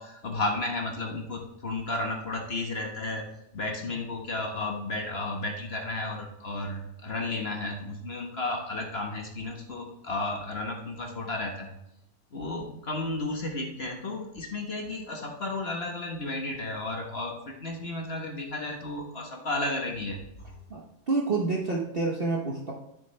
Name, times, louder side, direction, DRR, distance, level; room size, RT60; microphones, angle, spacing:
voice 1, 0.0-3.3 3.5-11.7 12.3-20.2, left 2 dB, 40° left, 1 dB, 1.4 m, -33 dB
voice 2, 20.7-22.7, right 3 dB, 40° right, -2 dB, 1.1 m, -28 dB
13.0 x 7.1 x 3.3 m, 0.84 s
omnidirectional pair, 1.8 m